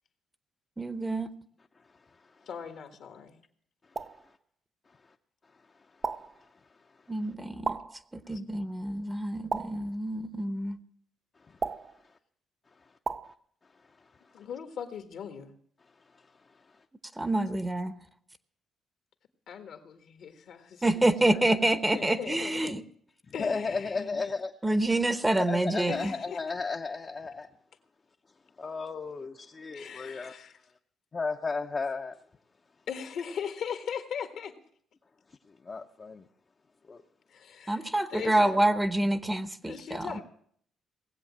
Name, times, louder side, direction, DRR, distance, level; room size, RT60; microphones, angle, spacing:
voice 1, 0.8-1.3 7.1-7.8 8.3-10.8 17.2-17.9 20.8-22.8 24.6-26.1 37.7-40.1, right 1 dB, 15° right, 0.9 m, -27 dB
voice 2, 2.5-3.4 14.3-15.5 19.5-20.9 21.3-22.8 23.3-24.0 25.9-26.4 29.7-30.6 32.9-34.5 37.3-38.6 39.6-40.2, left 7 dB, 70° left, 1.6 m, -39 dB
sound 1, 4.0-4.3 6.0-6.4 7.6-8.1 9.5-9.9 11.6-12.0 13.1-13.3, right 4 dB, 40° right, 0.5 m, -34 dB
voice 3, 23.3-24.5 25.4-27.5 28.6-30.4 31.1-32.2 35.5-36.3 36.9-37.0, left 4 dB, 35° left, 0.8 m, -34 dB
18.0 x 7.9 x 7.4 m
cardioid pair, 80°, 0 cm